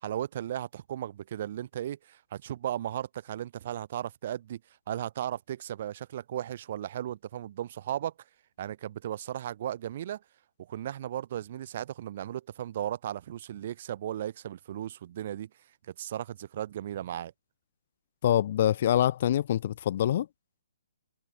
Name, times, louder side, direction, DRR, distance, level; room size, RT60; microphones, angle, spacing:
voice 1, 0.0-4.6 4.9-8.1 8.6-10.2 10.7-15.5 15.9-17.3, right 11 dB, 40° right, 2.0 m, -36 dB
voice 2, 18.2-20.3, left 11 dB, 40° left, 1.8 m, -25 dB
figure-of-eight pair, 130°, 0 cm